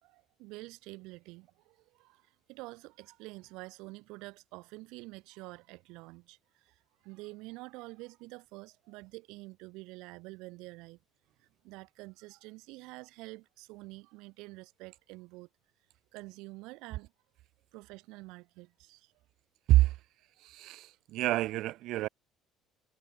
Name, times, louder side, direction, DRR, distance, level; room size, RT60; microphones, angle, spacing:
voice 1, 0.0-11.0 11.4-15.5 16.1-17.1 17.7-19.1, right 23 dB, 90° right, 3.2 m, -48 dB
voice 2, 20.4-22.1, right 16 dB, 65° right, 3.0 m, -27 dB
cardioid pair, 140°, 0 cm